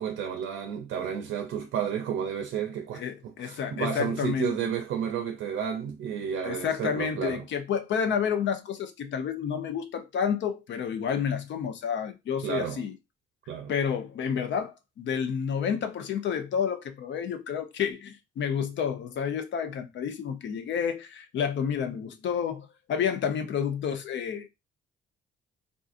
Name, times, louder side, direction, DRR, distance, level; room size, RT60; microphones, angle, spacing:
voice 1, 0.0-7.4 12.4-12.8 13.5-13.7, right 8 dB, 80° right, 0.5 m, -32 dB
voice 2, 2.9-4.7 6.4-12.9 13.7-24.5, left 7 dB, 65° left, 0.7 m, -30 dB
3.7 x 2.5 x 2.5 m
cardioid pair, 90°, 20 cm